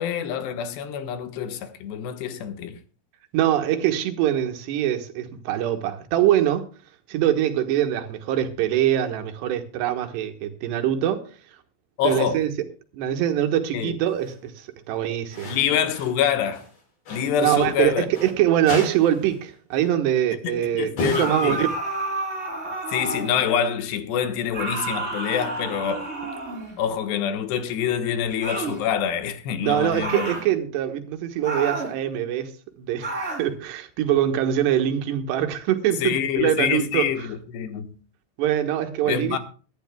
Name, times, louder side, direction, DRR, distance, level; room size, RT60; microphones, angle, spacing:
voice 1, 0.0-2.8 12.0-12.4 13.7-14.0 15.5-16.6 17.1-18.1 20.4-21.6 22.9-26.1 26.8-30.3 36.0-38.0 39.1-39.4, left 8 dB, 80° left, 3.3 m, -26 dB
voice 2, 3.3-6.7 7.1-11.2 12.0-12.5 12.9-15.6 17.4-21.7 29.6-37.1 38.4-39.4, right 11 dB, 80° right, 3.4 m, -23 dB
sound 1, 14.1-14.4 15.3-16.2 16.5-18.3 18.7-19.4 19.7-19.9 21.0-22.1, left 1 dB, 60° left, 7.0 m, -35 dB
sound 2, 21.1-23.4 24.5-26.8 28.4-28.8 30.0-30.5 31.4-32.0 33.0-33.5, right 2 dB, 15° right, 4.4 m, -30 dB
23.5 x 11.5 x 2.2 m
omnidirectional pair, 4.9 m